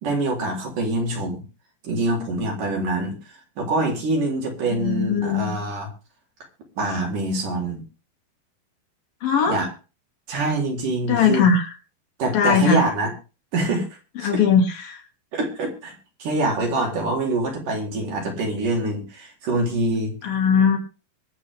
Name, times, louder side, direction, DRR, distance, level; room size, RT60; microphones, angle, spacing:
voice 1, 0.0-1.4 1.8-3.2 3.6-5.9 6.8-7.8 9.5-9.7 10.3-11.5 12.2-13.1 13.5-13.9 14.2-14.3 15.3-15.9 16.2-20.1, right 2 dB, 65° right, 1 dB, 5.5 m, -25 dB
voice 2, 4.7-5.5 9.2-9.6 11.1-11.7 12.3-12.8 14.2-15.0 20.2-20.8, left 6 dB, 85° left, 3 dB, 4.6 m, -19 dB
23.5 x 8.1 x 3.7 m, 0.33 s
omnidirectional pair, 4.0 m